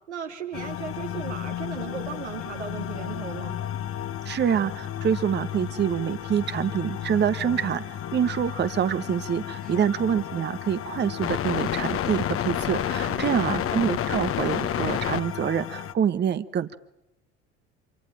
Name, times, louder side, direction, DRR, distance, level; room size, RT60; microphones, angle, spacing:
voice 1, 0.1-3.6 9.6-9.9 13.1-13.7, right 7 dB, 85° right, 3 dB, 2.8 m, -37 dB
sound 1, 0.5-15.9, left 10 dB, 40° left, 1.4 m, -31 dB
voice 2, 4.2-16.8, right 8 dB, 30° right, 13 dB, 1.2 m, -26 dB
27.0 x 24.0 x 9.0 m, 0.85 s
figure-of-eight pair, 65°, 34 cm